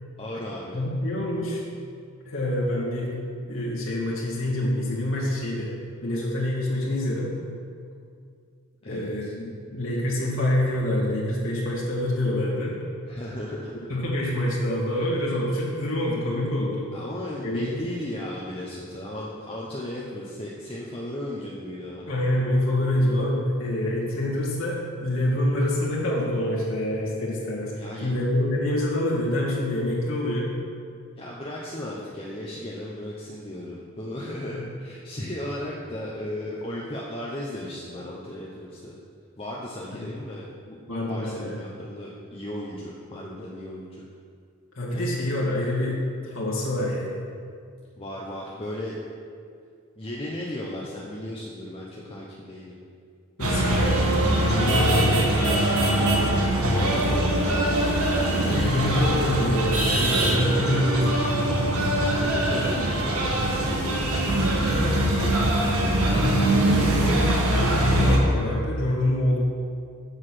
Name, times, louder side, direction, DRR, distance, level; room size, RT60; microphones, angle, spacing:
voice 1, 0.2-0.8 8.8-9.3 13.1-13.7 16.9-22.1 27.7-28.1 31.1-38.9 39.4-40.8 41.1-44.1 44.9-45.0 48.0-48.9 50.0-52.7 54.3-55.0 55.7-59.7 61.9-65.4, left 1 dB, 25° left, -5 dB, 0.9 m, -35 dB
voice 2, 0.7-1.6 2.3-3.1 3.5-5.7 6.0-7.3 8.8-12.8 13.9-16.9 17.4-17.7 22.1-30.5 34.5-34.6 39.9-40.0 40.9-41.6 44.7-47.2 53.4-54.1 54.4-55.4 58.5-61.7 66.1-69.4, left 1 dB, 65° left, -6 dB, 2.2 m, -26 dB
sound 1, 53.4-68.2, right 1 dB, 80° right, 1.6 m, -22 dB
8.2 x 7.8 x 6.2 m, 2.2 s
head